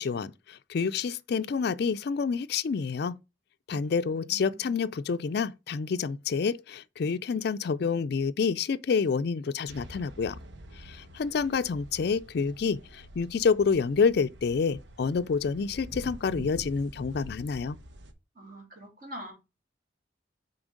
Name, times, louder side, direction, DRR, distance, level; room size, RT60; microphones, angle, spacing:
voice 1, 0.0-3.2 3.7-10.4 10.8-17.8, left 5 dB, 55° left, 0.4 m, -28 dB
voice 2, 3.7-4.8 18.4-19.3, equal, 50° right, 3.5 m, -45 dB
sound 1, 9.7-18.1, right 1 dB, 70° right, 1.0 m, -46 dB
6.1 x 4.4 x 5.1 m
head